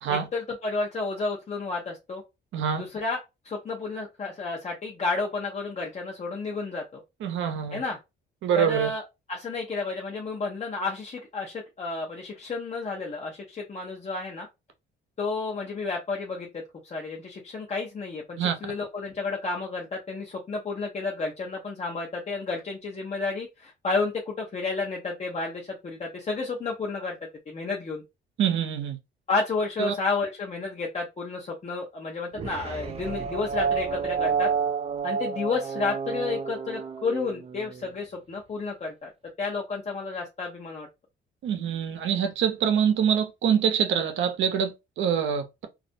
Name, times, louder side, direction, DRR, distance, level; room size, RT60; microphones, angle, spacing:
voice 1, 0.1-2.2 2.8-3.2 3.4-7.0 7.7-8.0 8.6-9.0 9.3-14.5 15.2-28.0 29.3-34.5 35.0-39.1 39.4-40.9, left 3 dB, 35° left, 0.7 m, -31 dB
voice 2, 2.5-2.8 7.2-7.8 8.4-8.9 18.4-18.5 28.4-29.0 29.8-29.9 41.4-45.7, right 8 dB, 75° right, 0.6 m, -25 dB
sound 1, 32.3-37.9, right 6 dB, 30° right, 0.4 m, -30 dB
2.4 x 2.0 x 2.6 m
cardioid pair, 90°, 20 cm